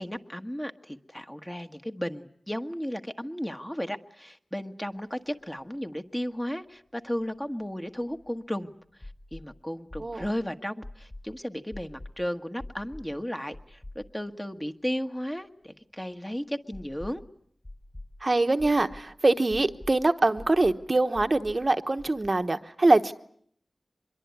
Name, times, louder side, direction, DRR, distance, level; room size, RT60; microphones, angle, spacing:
voice 1, 0.0-8.7 9.0-17.2, equal, 15° left, 6 dB, 1.5 m, -34 dB
sound 1, 5.2-5.3 5.5-5.6 7.2-8.4 9.0-9.5 9.9-10.4 10.8-11.3 11.7-12.1 12.6-13.1 13.5-14.3 14.6-14.7 16.7-17.3 17.6-18.1 18.6-19.1 19.5-20.0 20.4-20.8 21.1-21.6 22.0-22.3, left 1 dB, 30° left, 6.9 m, -44 dB
voice 2, 18.2-23.1, right 2 dB, 40° right, 8 dB, 1.0 m, -24 dB
24.5 x 22.5 x 9.5 m, 0.64 s
wide cardioid pair, 65°, 0 cm